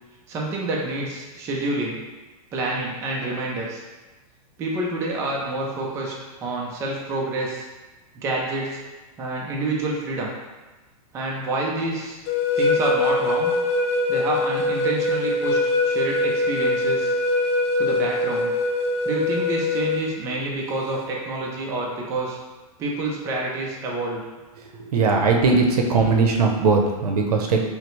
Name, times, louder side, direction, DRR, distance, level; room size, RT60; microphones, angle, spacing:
voice 1, 0.3-2.0 2.5-3.8 4.6-7.7 8.2-8.8 9.2-10.3 11.1-12.2 12.6-13.5 14.1-17.1 17.8-18.5 19.0-22.4 22.8-24.2, right 2 dB, 15° right, -2 dB, 0.4 m, -28 dB
sound 1, 12.3-20.0, left 2 dB, 45° left, 0.5 m, -23 dB
voice 2, 24.9-27.6, right 4 dB, 80° right, 2 dB, 0.8 m, -19 dB
5.6 x 2.0 x 3.1 m, 1.2 s
supercardioid pair, 160°, 19 cm